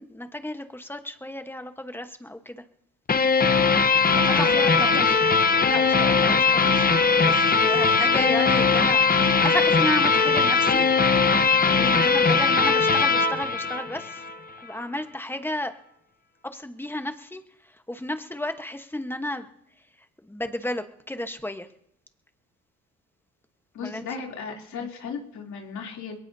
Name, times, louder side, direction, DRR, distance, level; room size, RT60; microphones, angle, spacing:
voice 1, 0.0-2.6 4.2-5.0 5.6-6.9 7.2-10.9 11.8-14.2 14.6-15.7 16.5-19.5 20.2-21.7 23.8-24.1 24.8-24.9, left 1 dB, 5° left, 7 dB, 1.2 m, -32 dB
sound 1, 3.1-14.4, left 4 dB, 30° left, 0.9 m, -20 dB
voice 2, 4.3-5.2 8.1-8.3 23.7-26.1, left 6 dB, 70° left, 0 dB, 3.2 m, -35 dB
22.0 x 18.0 x 2.8 m, 0.74 s
cardioid pair, 90°, 30 cm